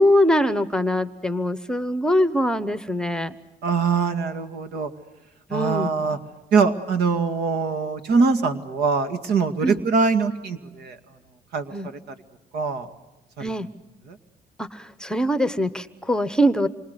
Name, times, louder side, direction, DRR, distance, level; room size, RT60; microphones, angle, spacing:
voice 1, 0.0-3.3 5.5-5.9 9.6-9.8 11.7-11.9 13.4-13.7 14.6-16.7, equal, 5° left, 12 dB, 1.0 m, -22 dB
voice 2, 3.6-4.9 5.5-6.2 6.5-11.0 11.5-12.0 12.5-12.9 13.4-13.5 14.1-14.2, right 4 dB, 75° right, 9 dB, 2.2 m, -23 dB
28.0 x 25.0 x 8.1 m, 1.0 s
cardioid pair, 110°, 17 cm